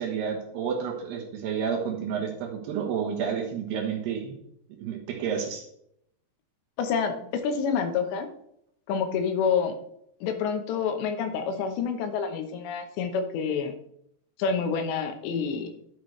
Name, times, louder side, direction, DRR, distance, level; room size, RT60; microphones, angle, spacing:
voice 1, 0.0-4.3 4.8-5.7, right 7 dB, 75° right, 1 dB, 3.2 m, -30 dB
voice 2, 6.8-8.3 8.9-9.8 10.2-13.7 14.4-15.7, left 6 dB, 85° left, 6 dB, 3.2 m, -28 dB
12.0 x 6.8 x 3.2 m, 0.73 s
omnidirectional pair, 5.0 m